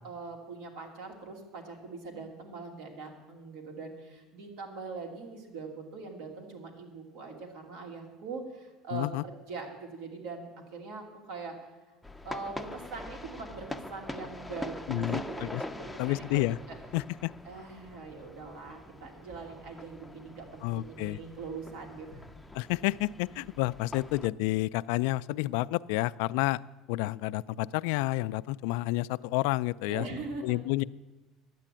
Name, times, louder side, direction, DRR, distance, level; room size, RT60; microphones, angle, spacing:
voice 1, 0.0-11.6 12.2-16.8 17.4-22.2 29.8-30.6, right 4 dB, 80° right, 2 dB, 2.8 m, -42 dB
voice 2, 8.9-9.2 14.9-15.6 16.0-16.6 16.9-17.3 20.6-21.2 22.5-26.6 26.9-30.1 30.4-30.8, left 18 dB, 80° left, 17 dB, 0.3 m, -30 dB
sound 1, 12.0-24.3, left 1 dB, 5° left, 0.5 m, -43 dB
10.5 x 8.4 x 8.9 m, 1.1 s
supercardioid pair, 115°, 0 cm